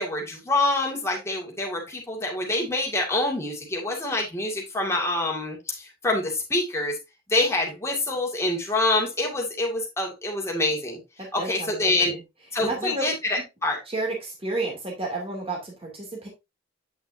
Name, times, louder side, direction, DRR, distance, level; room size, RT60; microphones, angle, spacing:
voice 1, 0.0-7.0 7.3-11.0 11.3-12.2 12.5-13.8, left 2 dB, 15° left, -1 dB, 2.1 m, -26 dB
voice 2, 11.2-12.2 12.6-13.1 13.9-16.3, right 2 dB, 30° right, -1 dB, 2.6 m, -31 dB
8.5 x 5.9 x 2.7 m, 0.23 s
head